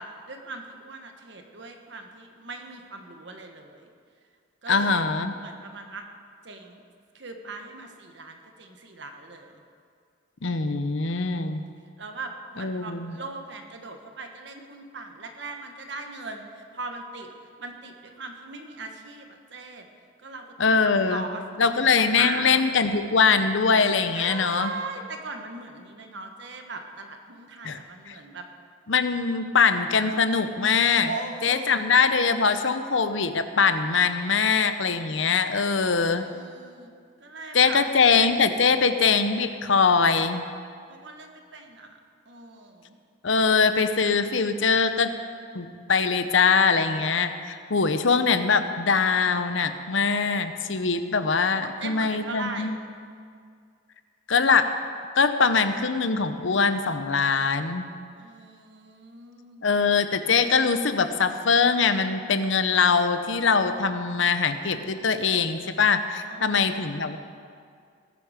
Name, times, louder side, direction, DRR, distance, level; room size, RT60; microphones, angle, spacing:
voice 1, 0.0-3.9 4.6-5.1 5.4-6.0 6.4-6.8 7.1-9.6 11.0-11.6 12.0-17.3 17.6-19.9 20.2-22.5 24.1-28.4 31.0-32.0 36.0-36.9 37.2-37.8 40.9-42.0 42.3-43.0 51.5-52.8 58.2-59.7 66.2-66.9, right 3 dB, 60° right, 4 dB, 1.4 m, -39 dB
voice 2, 4.7-5.4 10.4-11.7 12.6-13.1 20.6-21.2 21.6-24.7 27.6-27.8 28.1-28.2 28.9-31.1 31.4-36.3 37.5-40.4 43.2-45.1 45.5-52.8 54.3-54.7 55.2-57.9 59.6-67.2, left 5 dB, 70° left, 10 dB, 0.8 m, -22 dB
20.0 x 9.4 x 5.1 m, 2.2 s
head